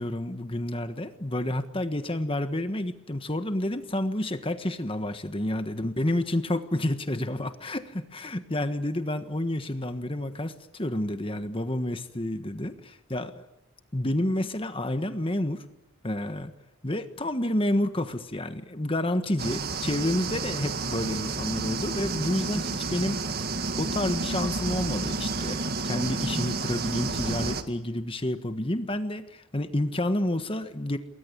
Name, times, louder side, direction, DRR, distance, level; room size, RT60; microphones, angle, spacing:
voice 1, 0.0-13.4 13.9-15.6 16.0-16.5 16.8-23.3 23.8-31.0, left 1 dB, 25° left, 9 dB, 1.4 m, -29 dB
sound 1, 19.4-27.6, right 3 dB, 45° right, 1.8 m, -31 dB
28.5 x 21.0 x 9.8 m, 0.91 s
head